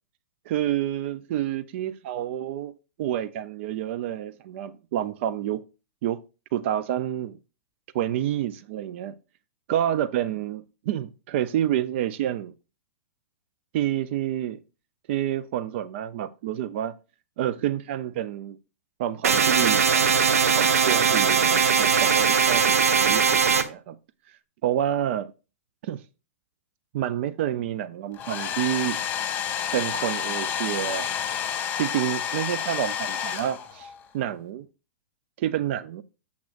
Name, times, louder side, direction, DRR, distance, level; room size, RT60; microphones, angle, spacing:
voice 1, 0.5-5.6 6.0-6.2 6.5-7.4 7.9-9.1 9.7-12.5 13.7-14.6 15.1-17.0 17.4-18.6 19.0-20.0 20.6-24.0 24.3-25.3 25.8-26.0 26.9-29.0 29.7-31.1 31.8-34.7 35.4-36.0, right 11 dB, 55° right, 0.4 m, -28 dB
sound 1, 19.2-23.6, right 6 dB, 85° right, 0.7 m, -20 dB
Domestic sounds home sounds, 28.1-34.0, left 8 dB, 25° left, 1.6 m, -30 dB
7.5 x 7.2 x 2.4 m
hypercardioid pair, 125°, 8 cm